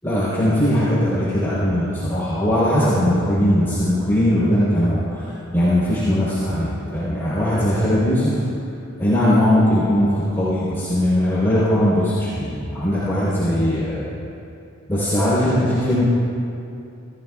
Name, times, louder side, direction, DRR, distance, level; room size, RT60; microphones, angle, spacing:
voice 1, 0.0-8.4 9.0-14.0 14.9-16.0, equal, 10° left, -11 dB, 3.7 m, -19 dB
27.0 x 15.5 x 2.4 m, 2.7 s
head